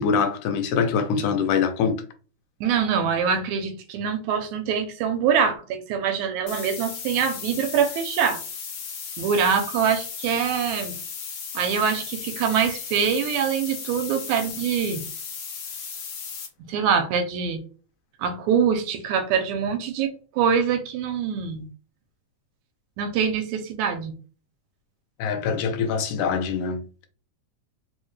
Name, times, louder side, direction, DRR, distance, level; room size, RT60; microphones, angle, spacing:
voice 1, 0.0-2.0 25.2-26.8, left 6 dB, 90° left, 2.1 m, -24 dB
voice 2, 2.6-8.4 9.2-11.0 11.5-15.0 16.6-17.6 18.2-21.7 23.0-24.2, right 7 dB, 80° right, 1.9 m, -24 dB
sound 1, 6.5-16.5, left 6 dB, 70° left, 1.4 m, -35 dB
4.8 x 2.1 x 3.1 m
omnidirectional pair, 3.4 m